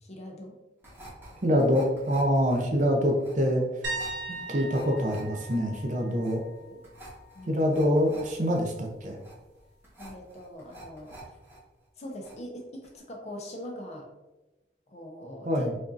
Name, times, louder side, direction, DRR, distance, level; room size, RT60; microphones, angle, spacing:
voice 1, 0.0-0.6 6.0-6.2 6.6-6.8 7.3-7.7 10.0-11.2 12.0-14.1 14.9-15.7, equal, 40° left, 1 dB, 0.6 m, -42 dB
sound 1, 0.8-11.6 11.9-12.6 12.8-13.0, right 1 dB, 10° right, 1.2 m, -49 dB
voice 2, 1.4-3.6 4.3-6.4 7.5-9.2 15.4-15.7, equal, 45° right, 1 dB, 0.6 m, -25 dB
sound 2, 3.8-7.6 7.9-8.3 11.1-11.2, right 2 dB, 80° right, 1.1 m, -39 dB
5.1 x 2.5 x 2.6 m, 1.1 s
head